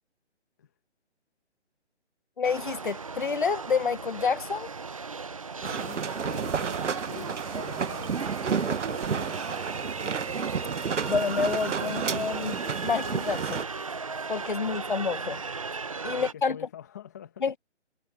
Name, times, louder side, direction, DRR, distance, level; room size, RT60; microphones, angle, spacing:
voice 1, 2.4-4.7 11.1-13.6 14.3-15.4 16.0-16.6 17.4-17.6, left 5 dB, 45° left, 1.2 m, -28 dB
sound 1, 2.4-16.3, right 4 dB, 30° right, 1.0 m, -36 dB
voice 2, 5.4-9.6 15.8-17.4, left 9 dB, 15° left, 1.8 m, -47 dB
sound 2, 5.6-13.6, right 6 dB, 80° right, 1.2 m, -31 dB
sound 3, 8.0-9.9 10.1-13.0, right 8 dB, 50° right, 3.3 m, -53 dB
hypercardioid pair, 180°, 35 cm